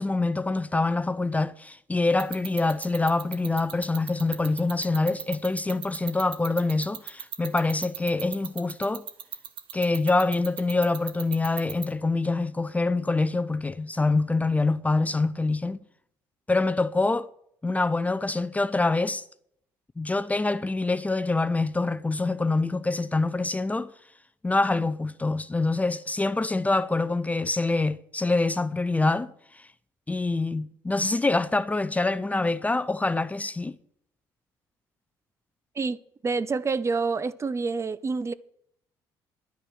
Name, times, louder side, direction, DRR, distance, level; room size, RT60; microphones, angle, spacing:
voice 1, 0.0-9.0 9.7-15.8 16.5-17.3 17.6-19.2 20.0-23.9 24.4-29.6 30.1-33.7, left 3 dB, 15° left, 0.6 m, -25 dB
sound 1, 2.2-11.8, right 10 dB, 65° right, 1.4 m, -34 dB
voice 2, 36.2-38.3, right 4 dB, 30° right, 0.8 m, -27 dB
10.5 x 9.8 x 6.4 m
supercardioid pair, 65°, 9 cm